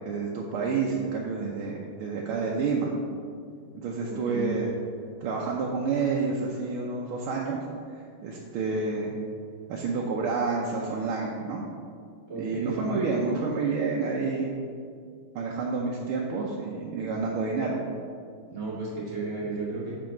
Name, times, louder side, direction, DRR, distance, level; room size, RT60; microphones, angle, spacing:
voice 1, 0.0-2.9 3.7-4.7 5.2-7.6 8.2-9.2 9.7-11.6 12.3-14.6 15.3-17.8, right 4 dB, 85° right, -3 dB, 1.6 m, -29 dB
voice 2, 4.0-4.7 12.3-13.0 18.5-20.0, right 3 dB, 45° right, -7 dB, 2.6 m, -33 dB
7.6 x 4.7 x 5.9 m, 2.3 s
omnidirectional pair, 2.3 m